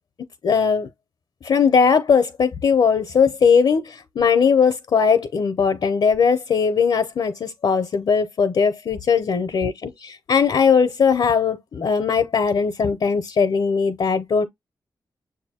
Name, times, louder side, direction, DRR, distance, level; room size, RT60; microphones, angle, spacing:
voice 1, 0.4-0.9 1.4-14.5, left 6 dB, 70° left, 0.6 m, -19 dB
6.6 x 2.6 x 2.8 m
cardioid pair, 70°, 8 cm